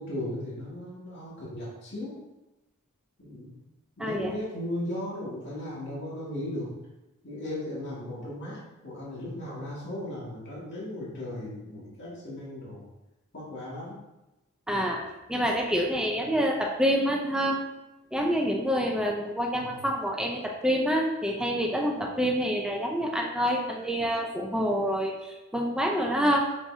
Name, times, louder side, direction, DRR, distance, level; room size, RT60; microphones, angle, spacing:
voice 1, 0.0-2.1 3.2-3.5 4.0-6.7 7.2-12.9 13.3-14.0 16.2-16.3 19.5-19.8, left 1 dB, 55° left, -7 dB, 2.1 m, -37 dB
voice 2, 4.0-4.4 14.7-15.0 15.3-17.6 18.1-26.5, equal, 5° right, 0 dB, 0.5 m, -27 dB
6.3 x 5.7 x 2.8 m, 0.98 s
head